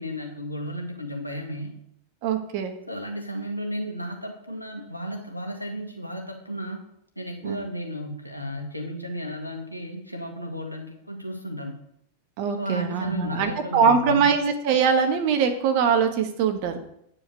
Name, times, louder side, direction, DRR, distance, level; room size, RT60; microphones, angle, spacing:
voice 1, 0.0-1.8 2.9-6.8 7.2-11.8 12.6-14.3, equal, 90° left, 1 dB, 1.8 m, -33 dB
voice 2, 2.2-2.8 7.4-7.6 12.4-16.8, right 6 dB, 45° right, 6 dB, 1.4 m, -22 dB
9.4 x 5.0 x 6.2 m, 0.72 s
figure-of-eight pair, 90°, 0 cm